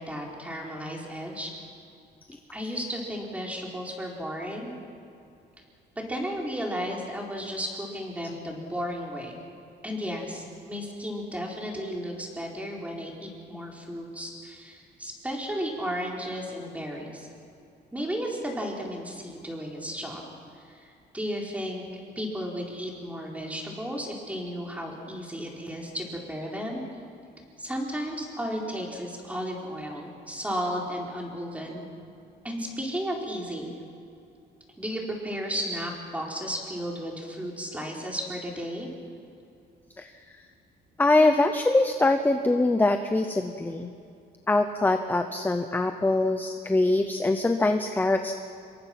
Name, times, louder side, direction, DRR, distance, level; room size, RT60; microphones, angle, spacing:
voice 1, 0.0-1.5 2.5-4.7 6.1-9.4 9.8-17.3 17.9-20.2 20.6-21.8 22.2-26.8 27.6-31.9 32.4-33.7 34.8-38.9, equal, 5° right, -1 dB, 4.3 m, -34 dB
voice 2, 41.0-43.9 44.5-48.4, left 2 dB, 10° left, 7 dB, 0.8 m, -23 dB
27.0 x 23.0 x 6.0 m, 2.6 s
cardioid pair, 140°, 19 cm